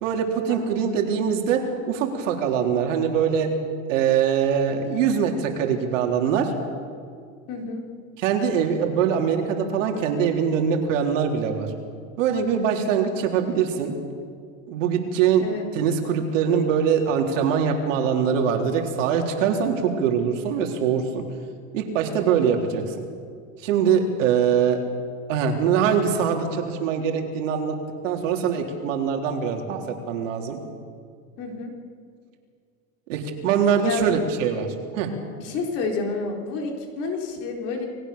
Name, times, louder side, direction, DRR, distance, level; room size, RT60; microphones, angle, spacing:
voice 1, 0.0-3.5 3.9-6.5 8.2-11.7 12.2-13.9 14.7-15.4 15.7-21.2 21.7-23.0 23.6-24.8 25.3-27.8 28.0-30.6 33.1-35.1, right 7 dB, 70° right, 2 dB, 3.8 m, -23 dB
voice 2, 7.5-7.8 15.4-15.6 31.4-31.7 33.8-34.0 35.4-37.9, left 4 dB, 35° left, 2 dB, 4.0 m, -29 dB
29.5 x 19.5 x 7.0 m, 2.2 s
supercardioid pair, 175°, 39 cm